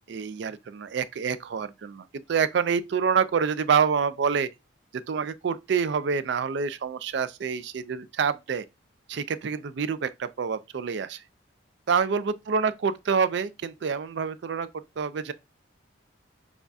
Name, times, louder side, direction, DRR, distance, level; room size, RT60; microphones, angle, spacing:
voice 1, 0.1-4.5 4.9-8.6 9.1-11.2 11.9-14.7 15.0-15.3, right 6 dB, 60° right, 0.4 m, -27 dB
6.8 x 2.3 x 2.6 m
head